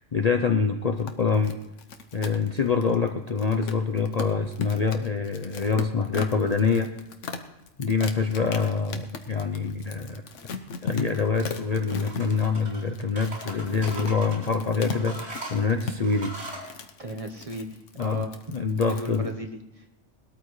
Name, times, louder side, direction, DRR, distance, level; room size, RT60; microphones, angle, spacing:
voice 1, 0.0-1.6 2.1-6.9 7.8-10.2 10.8-16.3 18.0-19.3, left 5 dB, 45° left, 5 dB, 0.6 m, -25 dB
sound 1, 0.9-19.3, left 5 dB, 80° left, 1.2 m, -37 dB
sound 2, 12.0-12.8 13.2-14.5 14.9-16.7, right 2 dB, 75° right, 4.6 m, -39 dB
voice 2, 17.0-18.3 18.9-19.9, right 1 dB, 30° right, 4 dB, 1.0 m, -36 dB
20.0 x 13.0 x 3.2 m, 0.90 s
omnidirectional pair, 1.2 m